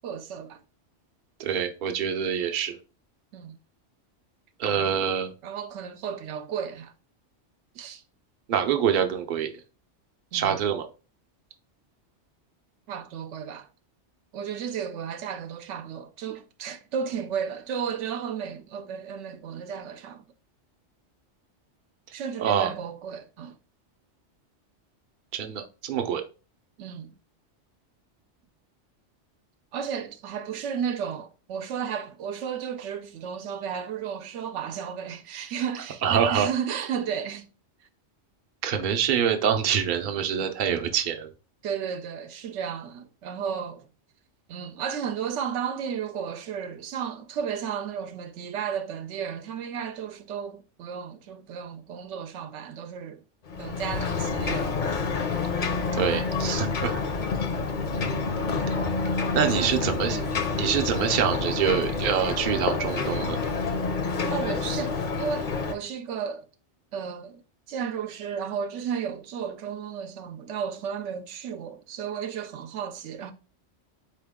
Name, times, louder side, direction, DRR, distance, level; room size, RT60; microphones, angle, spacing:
voice 1, 0.0-0.6 3.3-3.6 4.7-5.0 5.4-6.9 7.7-8.0 10.3-10.6 12.9-13.7 14.3-20.2 22.1-23.5 26.8-27.1 29.7-37.5 41.6-43.9 44.5-53.2 53.6-55.1 59.5-59.7 60.1-60.4 64.3-66.5 66.9-67.4 67.7-73.3, right 7 dB, 80° right, 0.9 m, -33 dB
voice 2, 1.4-2.8 4.6-5.3 8.5-9.5 10.3-10.9 22.4-22.7 25.3-26.2 36.0-36.5 38.6-41.3 55.9-57.0 58.7-58.8 59.3-60.2 60.6-63.4, right 8 dB, 55° right, 0.6 m, -25 dB
Ocean, 53.5-65.7, left 4 dB, 50° left, 0.6 m, -28 dB
4.3 x 2.9 x 3.5 m
omnidirectional pair, 1.2 m